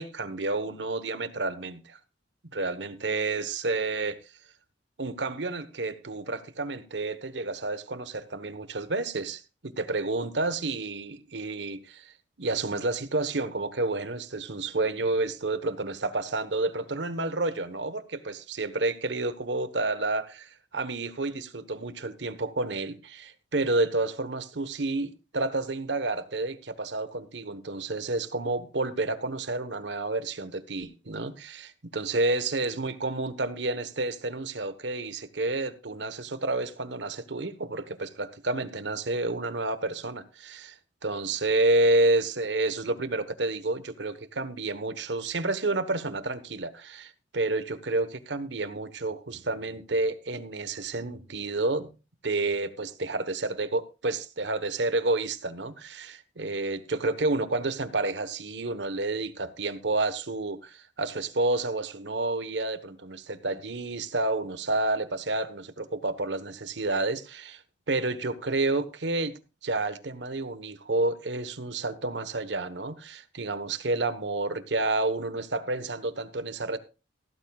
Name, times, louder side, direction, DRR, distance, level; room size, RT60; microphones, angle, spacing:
voice 1, 0.0-2.0 2.5-4.2 5.0-12.1 12.4-40.7 41.0-51.9 52.2-67.6 67.9-69.3 69.6-76.8, right 2 dB, 70° right, 1.2 m, -30 dB
15.5 x 13.5 x 2.4 m
head